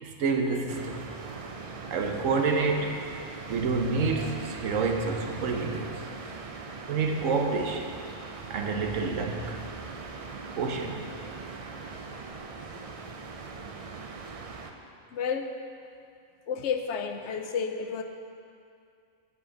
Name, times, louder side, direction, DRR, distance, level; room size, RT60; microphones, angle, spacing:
voice 1, 0.0-1.1 1.9-3.0 3.5-6.0 6.9-7.9 8.5-9.6 10.6-11.0, right 4 dB, 85° right, 4 dB, 1.2 m, -28 dB
sound 1, 0.7-14.7, right 4 dB, 60° right, 0.3 m, -41 dB
voice 2, 15.1-15.5 16.5-18.0, left 6 dB, 70° left, 6 dB, 0.8 m, -31 dB
7.7 x 5.0 x 7.0 m, 2.4 s
omnidirectional pair, 1.3 m